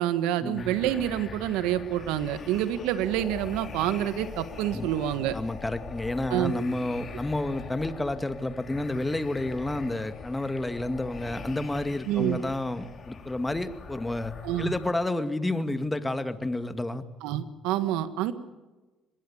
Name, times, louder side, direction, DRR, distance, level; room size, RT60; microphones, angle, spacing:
voice 1, 0.0-5.4 6.3-6.5 12.1-12.4 14.4-14.7 17.2-18.3, right 12 dB, 85° right, 12 dB, 1.5 m, -27 dB
sound 1, 0.6-14.9, left 5 dB, 45° left, 3.6 m, -43 dB
voice 2, 5.3-14.3 14.6-17.0, left 2 dB, 15° left, 10 dB, 2.0 m, -30 dB
24.0 x 21.5 x 7.2 m, 1.2 s
supercardioid pair, 75°, 0 cm